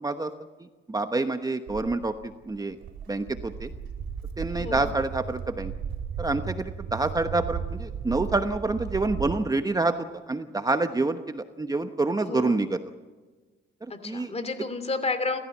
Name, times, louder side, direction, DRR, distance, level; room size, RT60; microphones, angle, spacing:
voice 1, 0.9-2.1 2.5-2.8 3.1-3.7 4.4-5.7 6.2-9.9 10.3-12.8 14.0-14.3, right 3 dB, 20° right, 8 dB, 1.1 m, -27 dB
Walk footsteps, 1.7-9.4, right 7 dB, 70° right, 3.9 m, -35 dB
voice 2, 4.6-4.9 12.2-12.7 13.9-15.4, left 3 dB, 30° left, 11 dB, 2.8 m, -31 dB
29.0 x 14.5 x 7.3 m, 1.3 s
cardioid pair, 90°, 20 cm